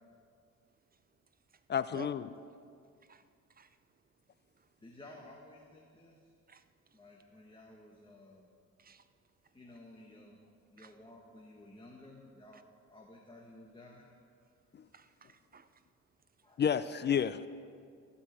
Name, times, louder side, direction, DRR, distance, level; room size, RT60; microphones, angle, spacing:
voice 1, 1.7-2.2 16.6-17.5, left 8 dB, 35° left, 14 dB, 0.4 m, -30 dB
voice 2, 3.0-3.8 4.6-4.7 6.5-7.0 8.8-9.1 10.8-10.9 12.5-12.6 14.9-15.8, right 6 dB, 30° right, 12 dB, 0.6 m, -53 dB
voice 3, 4.8-6.3 6.9-8.5 9.5-14.1 16.4-16.8, left 1 dB, 15° left, -1 dB, 1.4 m, -55 dB
15.0 x 5.6 x 7.9 m, 2.3 s
cardioid pair, 90°, 30 cm